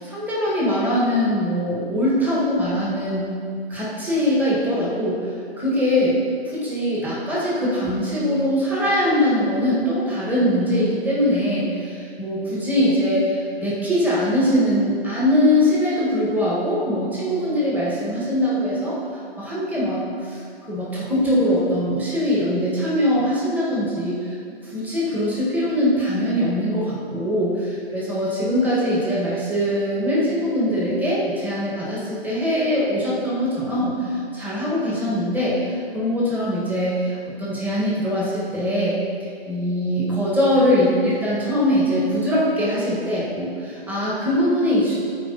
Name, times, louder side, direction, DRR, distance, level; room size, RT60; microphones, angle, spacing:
voice 1, 0.0-3.3 3.7-5.3 5.6-6.2 6.5-19.0 19.4-20.4 20.7-24.4 24.6-45.0, equal, 5° right, -8 dB, 1.9 m, -22 dB
13.0 x 4.6 x 4.2 m, 2.3 s
hypercardioid pair, 135°, 31 cm